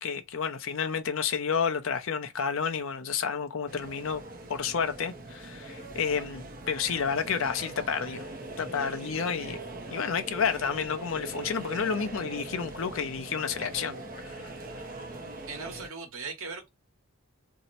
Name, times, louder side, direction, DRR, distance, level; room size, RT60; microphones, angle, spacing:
voice 1, 0.0-4.2 4.5-8.2 8.6-9.6 9.9-14.0 14.3-14.5, left 6 dB, 65° left, 0.5 m, -30 dB
sound 1, 3.7-15.9, right 1 dB, 40° right, 0.6 m, -41 dB
voice 2, 15.5-16.7, right 4 dB, 70° right, 1.1 m, -38 dB
2.7 x 2.1 x 4.0 m
head